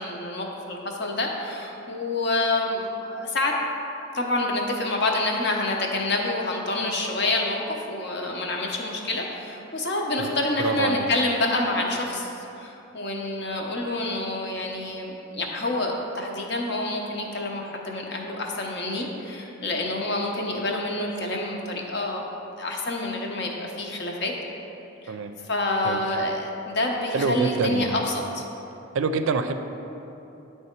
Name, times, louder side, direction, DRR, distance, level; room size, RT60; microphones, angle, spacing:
voice 1, 0.0-3.5 4.1-12.3 12.6-22.2 22.6-24.3 25.0-25.1 25.4-28.4, left 2 dB, 55° left, 0 dB, 0.8 m, -27 dB
voice 2, 10.6-11.1 25.1-25.3 25.8-26.0 27.1-28.0 28.9-29.5, right 4 dB, 75° right, 8 dB, 0.4 m, -26 dB
9.8 x 3.4 x 4.4 m, 3.0 s
head